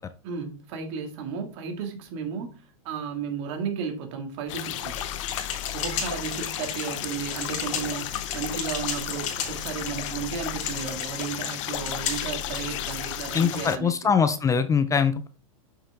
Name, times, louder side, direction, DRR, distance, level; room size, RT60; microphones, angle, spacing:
voice 1, 0.2-5.0 5.7-14.1, right 6 dB, 55° right, 2.0 m, -34 dB
sound 1, 4.4-13.6, left 2 dB, 20° right, 4.2 m, -43 dB
sound 2, 4.5-13.8, left 13 dB, 60° left, 0.7 m, -34 dB
sound 3, 4.9-12.6, left 7 dB, 40° left, 2.6 m, -35 dB
voice 2, 13.3-15.3, left 6 dB, 20° left, 0.5 m, -22 dB
6.9 x 5.9 x 3.4 m
hypercardioid pair, 110°, 18 cm